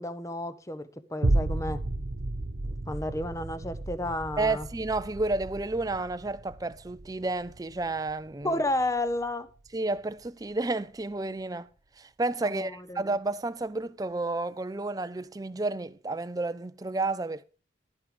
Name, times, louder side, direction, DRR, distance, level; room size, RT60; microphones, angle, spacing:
voice 1, 0.0-1.8 2.9-4.7 8.4-9.5 12.4-13.0, left 1 dB, 15° left, 0.7 m, -31 dB
sound 1, 1.2-9.8 10.3-10.4, right 2 dB, 85° right, 1.1 m, -33 dB
voice 2, 4.4-8.6 9.7-11.7 12.0-17.4, right 2 dB, 20° right, 0.4 m, -31 dB
11.5 x 8.5 x 4.9 m
head